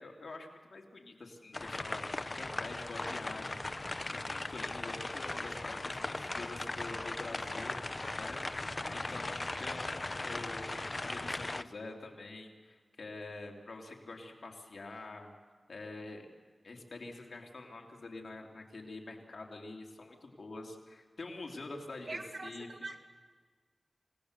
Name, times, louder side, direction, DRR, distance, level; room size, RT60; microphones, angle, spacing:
voice 1, 0.0-3.6 4.1-7.8 8.2-8.4 8.9-15.3 15.7-16.3 16.6-22.9, left 2 dB, 75° left, 1 dB, 2.9 m, -46 dB
sound 1, 1.5-11.6, left 2 dB, 40° left, 0.7 m, -38 dB
voice 2, 22.1-23.0, right 3 dB, 65° right, 3 dB, 2.5 m, -42 dB
28.5 x 18.5 x 6.7 m, 1.5 s
cardioid pair, 50°, 0 cm